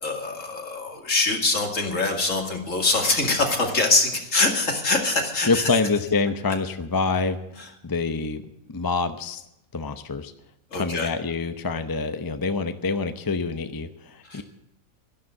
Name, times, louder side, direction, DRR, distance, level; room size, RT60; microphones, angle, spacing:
voice 1, 0.0-5.7 7.6-7.7 10.7-11.1 14.2-14.4, left 3 dB, 70° left, 3 dB, 2.7 m, -24 dB
voice 2, 5.4-9.4 9.7-10.3 10.7-14.4, left 4 dB, 20° left, 9 dB, 0.7 m, -26 dB
12.5 x 12.0 x 7.8 m, 0.83 s
omnidirectional pair, 1.4 m